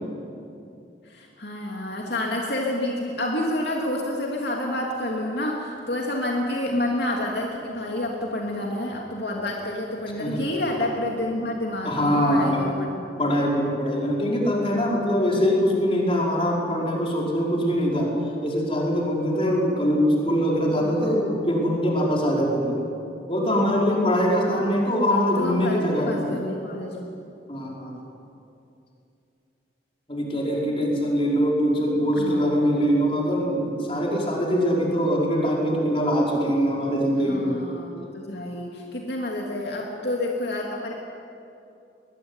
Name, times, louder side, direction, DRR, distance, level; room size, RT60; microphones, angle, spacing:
voice 1, 1.0-13.1 20.8-21.1 25.1-27.0 32.2-32.4 37.3-40.9, left 1 dB, 65° left, -1 dB, 2.8 m, -29 dB
voice 2, 11.8-12.7 13.2-18.1 18.4-22.8 23.3-26.3 27.5-28.0 30.1-37.6 39.7-39.8, equal, 30° left, -2 dB, 5.2 m, -23 dB
22.5 x 22.0 x 9.8 m, 2.7 s
head